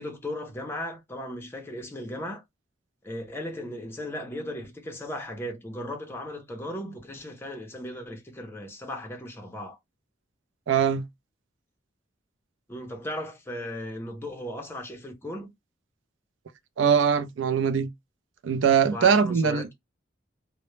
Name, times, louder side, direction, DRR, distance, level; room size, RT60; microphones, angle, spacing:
voice 1, 0.0-2.4 3.0-9.8 12.7-15.5 18.9-19.7, left 1 dB, 10° left, 0.5 m, -36 dB
voice 2, 10.7-11.0 16.8-17.9 18.4-19.7, right 7 dB, 75° right, 0.4 m, -22 dB
2.1 x 2.0 x 3.0 m
head